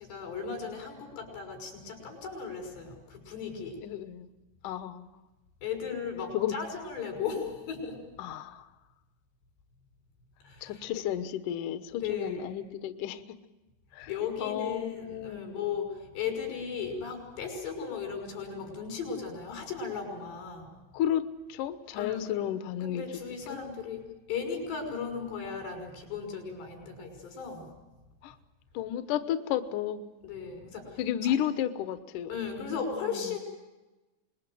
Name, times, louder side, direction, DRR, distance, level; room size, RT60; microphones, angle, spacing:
voice 1, 0.0-3.8 5.6-8.0 10.4-10.9 11.9-12.6 14.1-20.7 22.0-22.4 22.8-27.7 30.2-31.3 32.3-33.4, left 6 dB, 90° left, 4 dB, 7.9 m, -36 dB
voice 2, 3.8-4.3 4.6-5.1 6.3-6.5 8.2-8.7 10.6-13.2 13.9-14.1 14.4-15.6 20.9-23.0 23.5-23.6 28.2-28.3 28.7-30.1 31.0-32.3 32.6-33.3, left 10 dB, 65° left, 10 dB, 2.2 m, -32 dB
27.0 x 21.0 x 7.8 m, 1.1 s
omnidirectional pair, 4.8 m